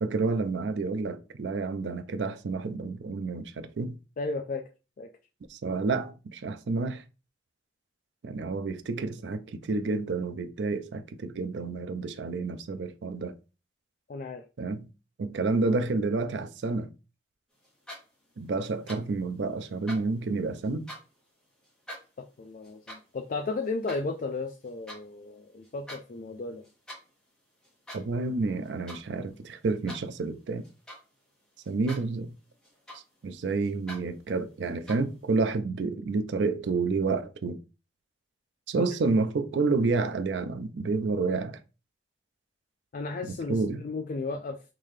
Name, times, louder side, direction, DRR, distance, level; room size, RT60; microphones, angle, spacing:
voice 1, 0.0-4.0 5.5-7.0 8.2-13.3 14.6-14.9 15.2-16.9 18.4-20.9 27.9-30.6 31.7-32.3 33.2-37.6 38.7-41.6 43.5-43.8, right 3 dB, 80° right, 0.4 m, -29 dB
voice 2, 4.2-4.6 5.0-5.1 14.1-14.4 22.2-26.6 38.8-38.9 42.9-44.6, left 3 dB, 50° left, 0.4 m, -34 dB
sound 1, 17.6-18.3 18.6-19.2 19.6-21.2 21.6-25.0 25.5-26.0 26.3-27.1 27.6-28.2 28.5-29.1 29.4-31.2 31.6-32.2 32.4-33.3 33.6-34.0 34.6-35.2, equal, 5° left, 1.2 m, -46 dB
3.8 x 2.7 x 3.1 m
head